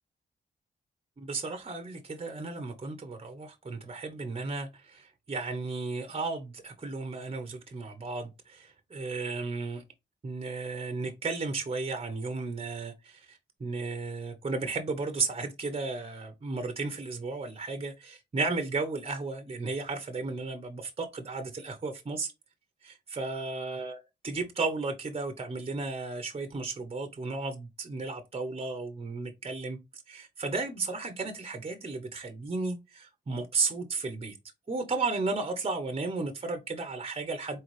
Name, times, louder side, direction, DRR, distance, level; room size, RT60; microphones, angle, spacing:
voice 1, 1.2-9.8 10.2-22.3 22.8-24.0 24.2-29.8 30.1-34.4 34.7-37.6, right 3 dB, 30° right, 0.9 m, -34 dB
4.1 x 3.9 x 3.2 m
cardioid pair, 85°, 19 cm